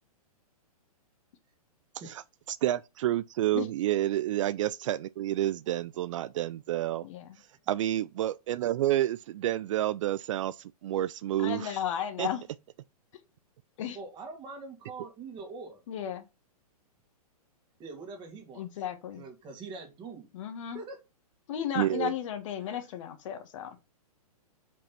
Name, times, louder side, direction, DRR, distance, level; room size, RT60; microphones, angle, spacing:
voice 1, 2.5-7.1 7.4-11.7 12.2-12.3 21.8-22.1, right 13 dB, 55° right, 0.4 m, -29 dB
voice 2, 7.0-7.4 11.4-12.4 13.8-14.0 15.9-16.2 18.5-19.2 20.3-20.8 21.5-23.8, left 10 dB, 55° left, 1.6 m, -34 dB
voice 3, 13.9-15.8 17.8-18.6 19.2-20.3 20.7-21.0, right 4 dB, 25° right, 2.2 m, -43 dB
5.4 x 5.1 x 5.7 m
hypercardioid pair, 135°, 20 cm